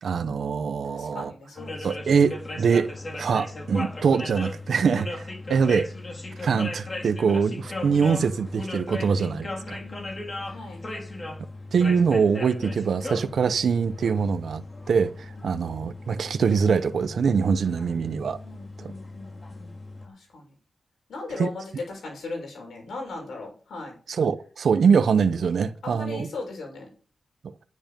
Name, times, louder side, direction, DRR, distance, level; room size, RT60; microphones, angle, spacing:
voice 1, 0.0-1.3 1.8-5.9 6.4-9.8 11.7-18.4 18.8-18.9 21.4-21.5 24.1-26.3, right 6 dB, 75° right, 0.8 m, -23 dB
voice 2, 0.9-2.0 8.9-10.2 10.5-10.9 15.4-15.9 17.7-18.0 18.4-19.8 20.0-20.5 21.1-24.0 25.8-26.9, left 3 dB, 85° left, 6.7 m, -39 dB
sound 1, 1.6-20.1, left 2 dB, 35° left, 3.8 m, -37 dB
10.5 x 9.7 x 5.3 m
cardioid pair, 80°, 0 cm